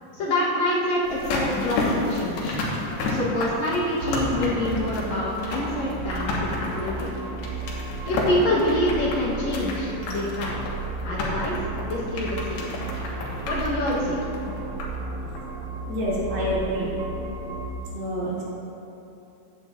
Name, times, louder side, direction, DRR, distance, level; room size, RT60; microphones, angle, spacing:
voice 1, 0.1-2.6 3.1-7.1 8.1-10.6 11.0-11.5 11.9-12.7 13.5-14.2 14.5-14.6, left 1 dB, 60° left, -6 dB, 2.0 m, -26 dB
sound 1, 1.1-15.1 15.4-15.5, left 2 dB, 85° left, 3.2 m, -31 dB
sound 2, 4.0-17.7, right 3 dB, 70° right, 2.3 m, -34 dB
voice 2, 15.9-16.9 17.9-18.4, equal, 90° right, -8 dB, 4.4 m, -27 dB
15.0 x 9.8 x 2.5 m, 2.9 s
omnidirectional pair, 4.3 m